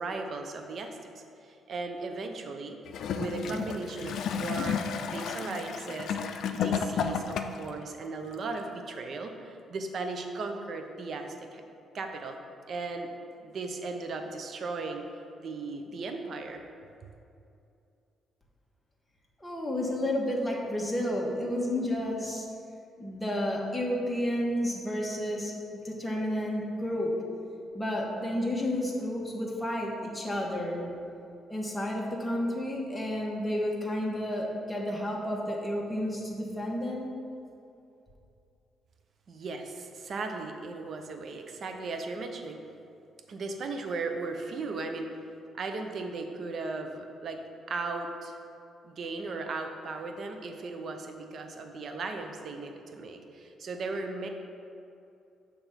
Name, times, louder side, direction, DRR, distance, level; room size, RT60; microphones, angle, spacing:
voice 1, 0.0-2.8 3.1-11.6 11.9-12.4 12.7-13.1 13.4-15.1 15.4-16.6 39.3-42.6 43.3-45.2 45.6-47.4 47.7-48.4 48.8-54.3, right 3 dB, 55° right, 5 dB, 0.7 m, -37 dB
Gurgling / Toilet flush, 2.9-7.7 8.6-8.7, left 6 dB, 75° left, 0.4 m, -32 dB
voice 2, 19.4-22.5 23.0-25.5 25.8-27.1 27.7-30.9 31.5-37.1, left 1 dB, 10° left, -3 dB, 1.2 m, -31 dB
6.9 x 3.4 x 5.8 m, 2.6 s
cardioid pair, 90°, 0 cm